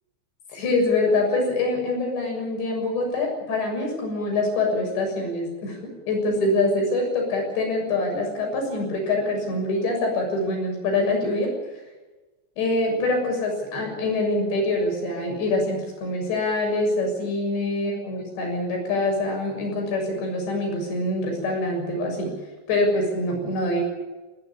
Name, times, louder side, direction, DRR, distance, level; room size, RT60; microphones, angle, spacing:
voice 1, 0.5-5.8 6.1-11.5 12.6-22.3 22.7-23.8, left 2 dB, 75° left, 2 dB, 9.2 m, -25 dB
20.5 x 18.5 x 8.7 m, 1.2 s
omnidirectional pair, 5.2 m